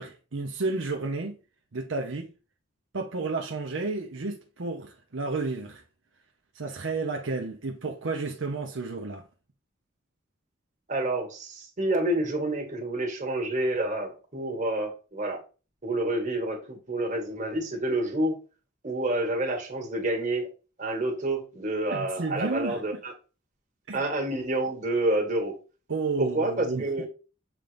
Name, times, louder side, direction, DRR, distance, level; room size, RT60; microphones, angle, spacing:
voice 1, 0.0-1.4 1.7-2.3 2.9-5.8 6.5-9.3 21.9-23.0 23.9-24.0 25.9-27.1, right 3 dB, 70° right, 0.8 m, -32 dB
voice 2, 10.9-15.4 15.8-18.4 18.8-20.5 20.8-23.1 23.9-25.5 26.2-27.1, right 1 dB, 40° right, 1.9 m, -28 dB
7.5 x 2.5 x 5.1 m
head